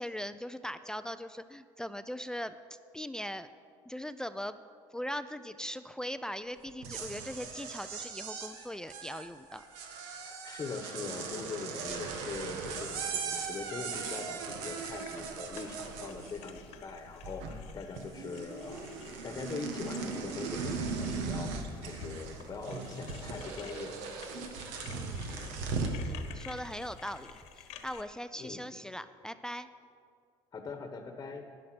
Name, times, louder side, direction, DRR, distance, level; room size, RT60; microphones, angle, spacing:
voice 1, 0.0-2.6 2.9-3.5 3.9-4.6 4.9-9.6 24.9-25.2 25.5-25.7 26.1-29.7, equal, 5° left, 12 dB, 0.4 m, -40 dB
sound 1, 6.7-16.7 17.0-17.7 18.0-26.0, right 5 dB, 85° right, 1.7 m, -39 dB
voice 2, 10.2-24.0 24.4-24.5 28.4-28.6 30.5-31.4, left 4 dB, 30° left, 6 dB, 1.2 m, -42 dB
sound 2, 14.8-28.0, left 8 dB, 75° left, 1.3 m, -52 dB
13.0 x 10.0 x 6.0 m, 2.2 s
cardioid pair, 115°, 11 cm